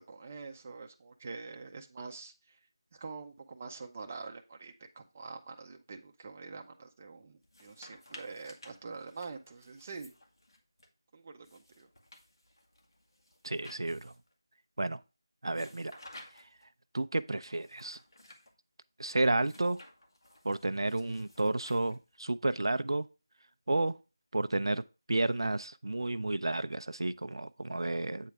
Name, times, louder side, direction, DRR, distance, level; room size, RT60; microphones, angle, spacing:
voice 1, 0.0-2.6 2.9-10.1 11.1-11.9, right 4 dB, 20° right, 0.6 m, -45 dB
sound 1, 7.4-10.9 11.4-14.3 15.5-16.7 17.4-18.5 19.4-22.2, left 1 dB, 70° left, 1.9 m, -55 dB
voice 2, 13.4-14.1 14.8-15.0 15.4-16.0 16.3-16.5 16.9-18.0 19.0-19.8 20.4-23.1 23.7-24.0 24.3-24.8 25.1-28.3, right 2 dB, 75° right, 0.5 m, -31 dB
8.3 x 3.4 x 5.8 m
figure-of-eight pair, 175°, 2 cm